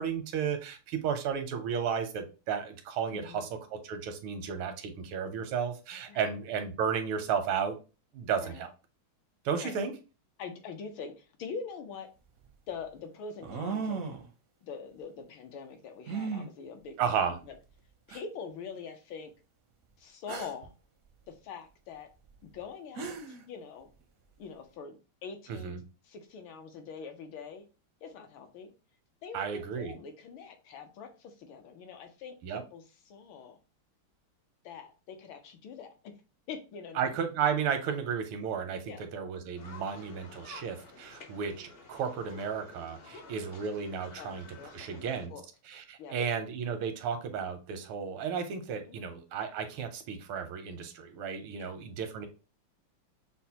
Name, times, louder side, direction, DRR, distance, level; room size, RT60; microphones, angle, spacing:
voice 1, 0.0-7.8 8.1-8.7 9.4-9.9 17.0-17.4 25.5-25.8 29.3-29.9 32.4-32.6 36.9-44.4 44.7-45.3 45.7-52.3, right 7 dB, 85° right, 1.6 m, -33 dB
voice 2, 3.1-3.5 6.1-6.3 8.4-8.6 9.6-9.7 10.4-12.1 12.7-14.0 14.6-17.5 18.1-19.3 20.0-20.7 21.3-22.1 22.5-23.9 24.4-27.6 28.0-28.7 29.2-33.6 34.6-36.1 36.5-37.2 38.9-39.0 43.1-43.3 44.2-45.4 46.0-46.2 48.9-49.1 51.6-51.7, left 5 dB, 75° left, 1.5 m, -44 dB
sound 1, 11.9-12.0 13.4-14.3 16.1-16.5 17.5-17.6 18.1-18.2 20.3-20.7 22.6-22.7 23.0-23.4, right 5 dB, 70° right, 0.8 m, -36 dB
sound 2, 39.5-45.3, left 3 dB, 50° left, 0.7 m, -51 dB
6.5 x 2.2 x 2.8 m
omnidirectional pair, 2.3 m